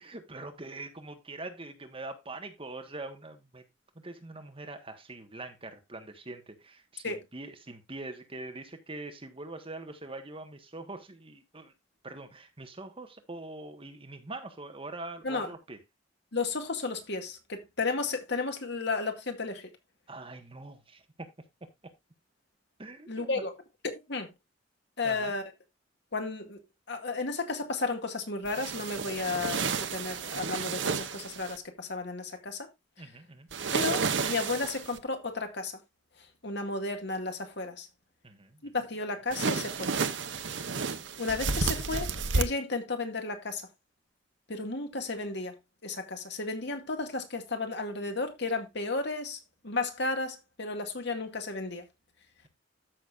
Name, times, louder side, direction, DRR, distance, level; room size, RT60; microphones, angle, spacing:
voice 1, 0.0-3.6 3.9-11.7 12.0-15.8 20.1-21.3 22.8-23.4 25.0-25.3 33.0-33.5 38.2-38.7, right 2 dB, 30° right, 1.5 m, -43 dB
voice 2, 16.3-19.7 23.1-23.5 24.1-24.3 25.0-25.4 26.1-26.6 26.9-32.7 33.7-35.8 36.4-37.9 38.6-39.9 41.2-43.7 44.5-51.8, left 3 dB, 65° left, 2.1 m, -33 dB
sound 1, 28.5-31.6 33.5-35.0 39.3-42.4, right 4 dB, 70° right, 1.0 m, -31 dB
13.5 x 6.4 x 2.5 m
head